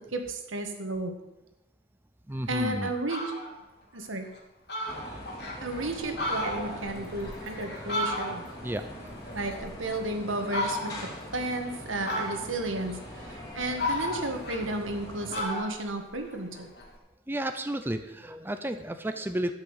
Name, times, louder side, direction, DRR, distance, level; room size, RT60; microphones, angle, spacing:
voice 1, 0.1-1.1 2.5-3.2 3.9-4.3 5.6-8.4 9.3-16.7, right 2 dB, 85° right, 5 dB, 1.7 m, -33 dB
voice 2, 2.3-2.9 5.2-5.3 8.6-9.4 17.3-19.5, right 1 dB, 10° right, 8 dB, 0.5 m, -33 dB
Fowl, 2.5-2.6 2.9-3.5 4.0-4.1 4.4-4.5 4.7-5.6 6.0-8.7 9.0-10.0 10.5-11.2 12.0-12.7 13.3-15.0 15.3-16.9, left 1 dB, 55° left, 2.5 m, -34 dB
sound 1, 4.9-15.4, equal, 20° left, 2.9 m, -42 dB
12.5 x 5.9 x 8.1 m, 0.97 s
head